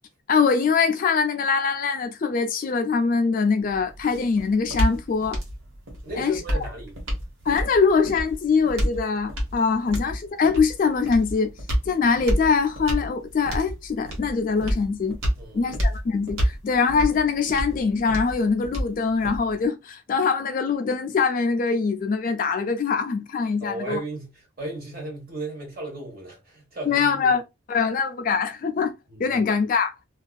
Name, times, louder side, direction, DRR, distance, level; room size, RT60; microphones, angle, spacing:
voice 1, 0.3-5.4 6.2-6.7 7.5-11.5 11.9-15.2 15.5-24.0 26.9-27.4 27.7-28.9 29.2-29.9, left 5 dB, 40° left, 0.3 m, -23 dB
sound 1, 3.6-19.7, equal, 85° right, 1.1 m, -29 dB
voice 2, 6.0-6.9 15.4-15.8 23.6-27.4 29.1-29.4, right 2 dB, 45° right, 1.2 m, -36 dB
2.6 x 2.3 x 2.3 m
head